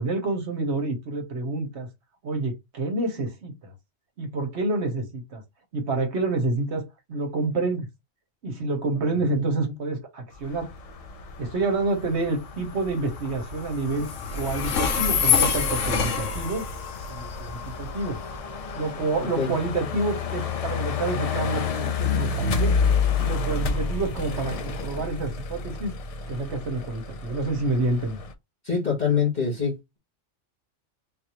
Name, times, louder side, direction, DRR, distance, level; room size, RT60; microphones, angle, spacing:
voice 1, 0.0-1.9 2.2-3.7 4.2-5.4 5.7-7.9 8.4-10.7 11.4-14.1 14.3-16.6 17.1-18.2 18.8-22.8 23.2-25.9 26.3-28.2, right 3 dB, 65° right, 1.3 m, -28 dB
Train, 10.3-25.1, left 6 dB, 90° left, 1.1 m, -30 dB
sound 1, 10.4-28.3, left 5 dB, 70° left, 0.3 m, -30 dB
voice 2, 28.6-30.0, left 6 dB, 40° left, 1.4 m, -25 dB
3.9 x 2.6 x 2.9 m
omnidirectional pair, 1.2 m